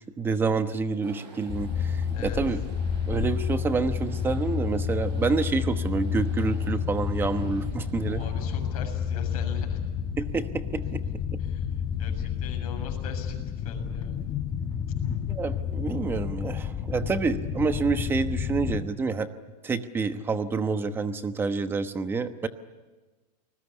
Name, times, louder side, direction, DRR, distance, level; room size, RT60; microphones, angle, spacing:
voice 1, 0.2-2.6 3.1-8.2 10.2-11.0 15.3-19.3 19.6-22.5, right 4 dB, 10° right, 9 dB, 1.0 m, -28 dB
sound 1, 1.0-9.2, right 5 dB, 80° right, 8.0 m, -50 dB
sound 2, 1.5-18.8, left 7 dB, 20° left, 1.2 m, -30 dB
voice 2, 8.0-9.8 11.4-14.3, left 7 dB, 60° left, 5 dB, 7.1 m, -41 dB
29.0 x 20.5 x 9.8 m, 1.2 s
supercardioid pair, 165°, 21 cm